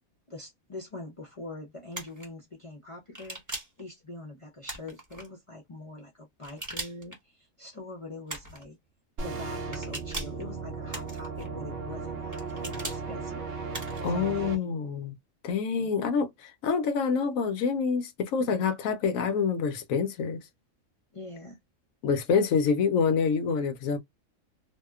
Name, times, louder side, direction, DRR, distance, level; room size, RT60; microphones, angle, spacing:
voice 1, 0.3-3.4 3.8-8.8 9.2-14.7 15.8-15.9 18.4-18.6 21.1-21.6, left 2 dB, 45° left, 0.4 m, -44 dB
sound 1, 1.9-2.3 3.1-3.8 4.6-5.3 6.4-7.2 8.3-8.7 9.7-10.4 10.9-11.5 12.3-13.0 13.7-14.1, right 2 dB, 15° right, 0.9 m, -39 dB
sound 2, 9.2-14.6, right 4 dB, 55° right, 0.8 m, -36 dB
voice 2, 14.0-15.1 15.4-20.4 22.0-24.0, left 5 dB, 85° left, 1.0 m, -27 dB
2.7 x 2.1 x 2.2 m
omnidirectional pair, 1.4 m